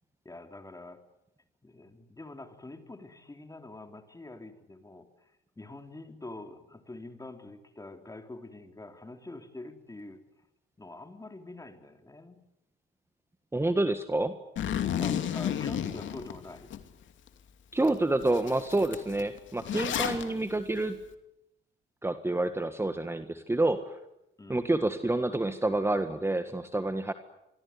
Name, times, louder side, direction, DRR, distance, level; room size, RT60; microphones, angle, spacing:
voice 1, 0.3-1.0 1.6-10.2 10.8-12.4 15.0-16.7 24.4-24.7, left 2 dB, 15° left, 7 dB, 3.6 m, -45 dB
voice 2, 13.5-14.4 17.7-21.0 22.0-24.0 24.5-27.1, right 2 dB, 10° right, 9 dB, 1.6 m, -28 dB
Zipper (clothing), 14.6-16.8 17.3-17.4 17.8-18.0 18.2-20.2, left 9 dB, 70° left, 2.7 m, -32 dB
26.5 x 23.0 x 9.7 m, 0.87 s
cardioid pair, 90°, 20 cm